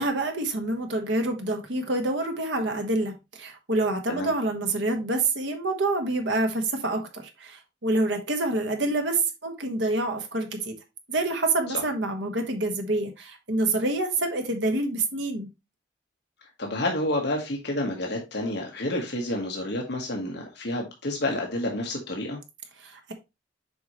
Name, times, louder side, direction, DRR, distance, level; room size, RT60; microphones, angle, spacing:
voice 1, 0.0-10.7 11.1-15.5 22.8-23.1, right 2 dB, 75° right, 1.5 m, -27 dB
voice 2, 16.6-22.4, left 1 dB, 60° left, 1.4 m, -29 dB
7.1 x 4.8 x 3.1 m
head